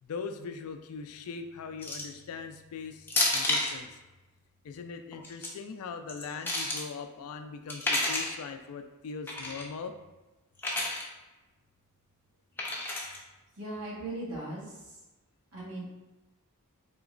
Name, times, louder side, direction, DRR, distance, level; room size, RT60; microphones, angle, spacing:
voice 1, 0.0-3.9 4.6-9.9, left 5 dB, 75° left, 7 dB, 0.3 m, -40 dB
sound 1, 1.8-2.2 3.1-3.8 5.1-5.5 6.1-6.8 7.7-8.4 9.3-9.6 10.6-11.0 12.6-13.2, left 2 dB, 10° left, 0.5 m, -30 dB
voice 2, 13.6-15.0 15.5-15.8, right 2 dB, 80° right, -6 dB, 1.3 m, -38 dB
3.7 x 3.0 x 2.4 m, 1.1 s
head